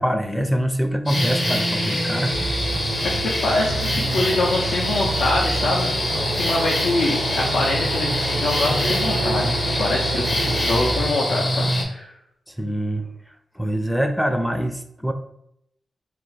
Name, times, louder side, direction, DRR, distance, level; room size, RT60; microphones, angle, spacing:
voice 1, 0.0-2.3 12.6-13.1 13.6-15.1, equal, ahead, 7 dB, 0.4 m, -24 dB
sound 1, 1.1-11.8, left 1 dB, 45° left, 0.6 m, -25 dB
sound 2, 1.1-11.1, right 3 dB, 85° right, 0.6 m, -29 dB
voice 2, 3.0-12.1, left 2 dB, 90° left, -3 dB, 0.5 m, -25 dB
2.4 x 2.1 x 3.8 m, 0.77 s
cardioid pair, 55°, 0 cm